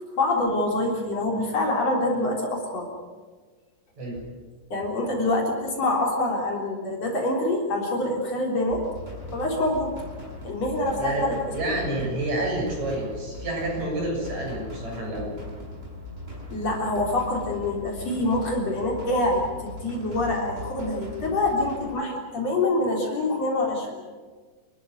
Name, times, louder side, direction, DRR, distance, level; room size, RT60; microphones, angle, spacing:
voice 1, 0.2-2.9 4.7-8.8 9.3-9.9 10.4-11.4 16.5-24.0, left 2 dB, 55° left, 0 dB, 4.7 m, -25 dB
sound 1, 8.7-21.8, left 2 dB, 15° right, 6.5 m, -39 dB
voice 2, 11.0-15.3, right 1 dB, 60° right, 0 dB, 8.2 m, -29 dB
28.5 x 13.5 x 9.5 m, 1.5 s
omnidirectional pair, 3.6 m